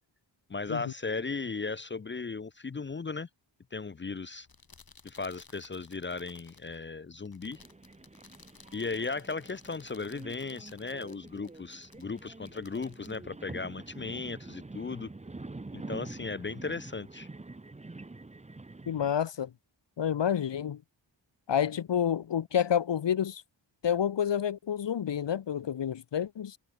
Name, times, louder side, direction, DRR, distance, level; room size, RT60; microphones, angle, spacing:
voice 1, 0.5-3.3 3.7-4.5 5.0-7.6 8.7-15.1 15.7-17.3, left 4 dB, 25° left, 0.6 m, -36 dB
sound 1, 4.3-14.2, left 4 dB, 50° left, 6.8 m, -58 dB
sound 2, 7.5-19.1, right 2 dB, 15° right, 0.9 m, -46 dB
voice 2, 18.9-19.5 20.0-20.8 21.5-23.4 23.8-26.6, left 9 dB, 65° left, 1.2 m, -29 dB
cardioid pair, 75°, 47 cm